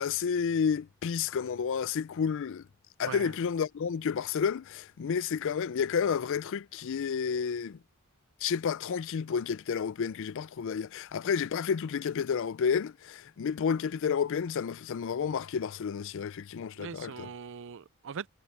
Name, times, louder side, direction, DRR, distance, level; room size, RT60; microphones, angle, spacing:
voice 1, 0.0-2.6 3.0-7.8 8.4-17.3, left 6 dB, 60° left, 0.4 m, -31 dB
voice 2, 3.0-3.3 16.7-18.3, right 6 dB, 60° right, 0.5 m, -41 dB
head